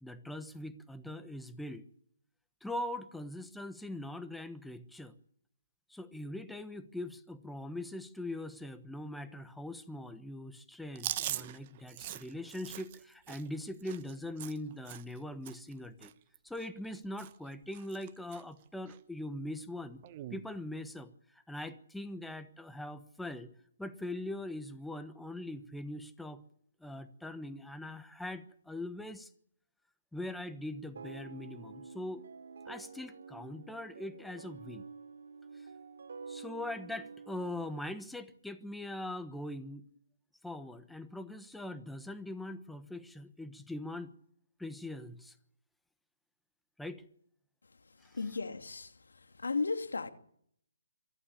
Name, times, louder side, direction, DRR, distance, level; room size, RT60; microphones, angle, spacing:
voice 1, 0.0-1.8 2.6-5.1 5.9-16.1 16.4-20.0 20.3-23.5 23.8-26.4 26.8-29.3 30.1-32.2 32.6-34.8 35.5-35.7 36.3-39.8 40.4-44.1 44.6-45.3 46.8-47.1 48.0-48.3, left 1 dB, ahead, 1.1 m, -42 dB
Chewing mastication, 11.0-15.2 15.5-15.7 16.0-16.9 17.2-17.5 17.7-18.4 18.9-19.0 20.0-20.4, right 13 dB, 30° right, 1.1 m, -42 dB
sound 1, 31.0-37.8, right 5 dB, 65° right, 5.1 m, -49 dB
voice 2, 48.1-48.9 49.4-50.1, left 4 dB, 90° left, 2.4 m, -34 dB
23.5 x 14.5 x 8.5 m
hypercardioid pair, 155°, 0 cm